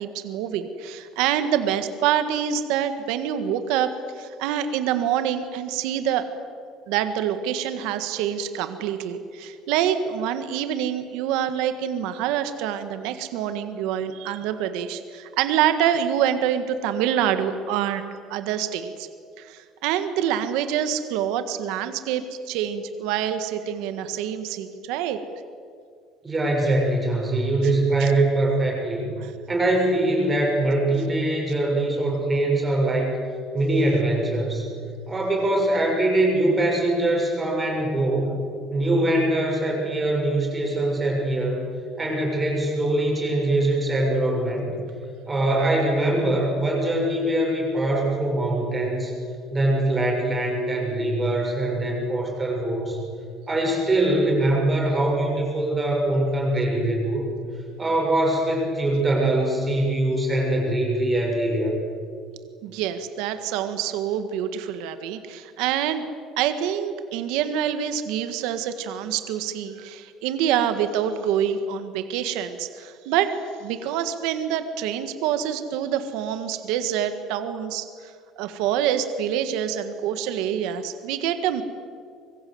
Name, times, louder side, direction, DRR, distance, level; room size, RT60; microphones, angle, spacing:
voice 1, 0.0-6.3 6.9-18.0 18.3-19.1 19.4-25.2 28.0-28.1 29.2-29.3 62.6-66.0 66.4-81.6, right 9 dB, 80° right, 9 dB, 1.7 m, -26 dB
voice 2, 26.2-29.1 29.5-33.1 33.5-34.7 35.1-38.3 38.7-41.7 42.0-44.7 45.3-49.1 49.5-53.0 53.5-57.2 57.8-61.8, right 1 dB, 15° right, -1 dB, 6.5 m, -23 dB
25.5 x 22.5 x 7.9 m, 2.2 s
cardioid pair, 165°, 0 cm